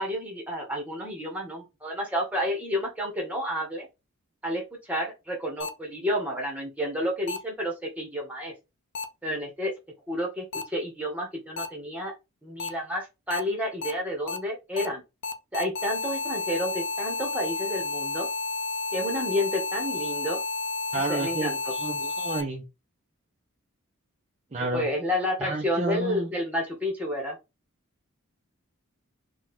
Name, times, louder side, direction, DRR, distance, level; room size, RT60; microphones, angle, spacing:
voice 1, 0.0-3.9 4.4-8.5 9.2-9.7 10.1-12.1 12.4-15.0 15.5-18.3 18.9-20.4 20.9-21.7 24.6-27.4, equal, 5° right, 0 dB, 1.2 m, -30 dB
sound 1, 5.6-5.7 7.3-7.4 8.9-9.0 10.5-10.6 11.6-11.7 12.6-12.7 13.3-13.4 13.8-13.9 14.3-14.4 14.8-14.9 15.2-22.4, left 3 dB, 55° left, 0.6 m, -31 dB
voice 2, 20.9-22.6 24.5-24.9 25.4-26.3, right 2 dB, 30° right, 2 dB, 0.5 m, -30 dB
4.1 x 2.4 x 4.2 m, 0.25 s
head